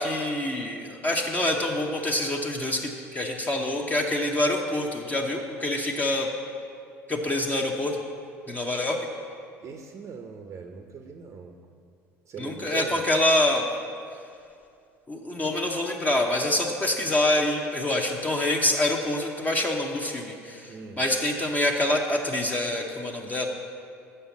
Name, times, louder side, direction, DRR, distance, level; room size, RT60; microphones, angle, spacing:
voice 1, 0.0-6.3 7.1-8.0 8.5-9.0 12.4-13.7 15.1-23.5, left 1 dB, 20° left, 0 dB, 0.8 m, -26 dB
voice 2, 9.6-11.6 12.3-13.1 20.7-21.0, right 5 dB, 40° right, 5 dB, 0.7 m, -40 dB
6.5 x 5.6 x 7.0 m, 2.4 s
hypercardioid pair, 70°, 8 cm